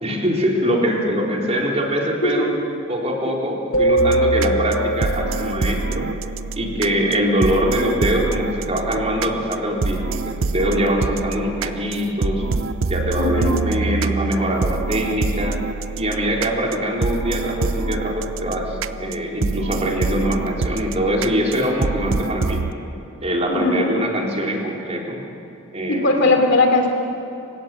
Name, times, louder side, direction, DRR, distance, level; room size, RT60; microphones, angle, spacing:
voice 1, 0.0-2.5 2.9-6.1 6.6-12.4 12.9-15.6 15.9-22.7 23.2-25.2 25.7-26.5, equal, 30° right, -1 dB, 3.8 m, -23 dB
voice 2, 2.2-2.6 6.8-7.2 13.2-13.6 23.5-23.9 25.9-26.9, left 2 dB, 60° left, 4 dB, 3.3 m, -19 dB
sound 1, 3.7-6.0, right 1 dB, 80° left, 1.5 m, -21 dB
sound 2, 4.0-22.7, right 4 dB, 75° right, 0.6 m, -26 dB
27.5 x 17.0 x 7.6 m, 2.9 s
head